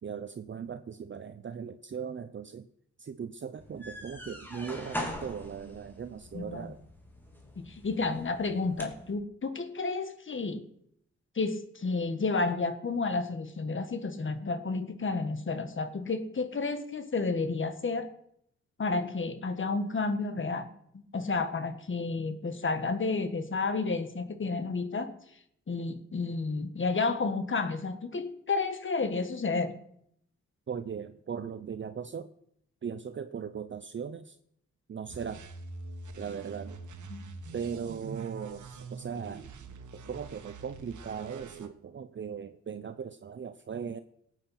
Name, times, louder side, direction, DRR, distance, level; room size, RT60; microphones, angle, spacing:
voice 1, 0.0-2.7 3.0-6.8 30.7-32.3 32.8-34.4 34.9-35.4 36.2-36.8 37.5-39.4 39.9-44.0, right 7 dB, 40° right, 11 dB, 0.7 m, -38 dB
sound 1, 3.6-9.1, left 1 dB, 5° left, 3.1 m, -42 dB
voice 2, 6.3-6.7 7.6-10.6 11.3-18.1 18.8-20.7 21.1-25.1 25.7-29.7 37.1-37.3, left 3 dB, 45° left, 10 dB, 1.6 m, -31 dB
sound 2, 35.1-41.7, right 3 dB, 85° right, 1.5 m, -45 dB
18.0 x 9.1 x 5.9 m, 0.71 s
wide cardioid pair, 110°, 29 cm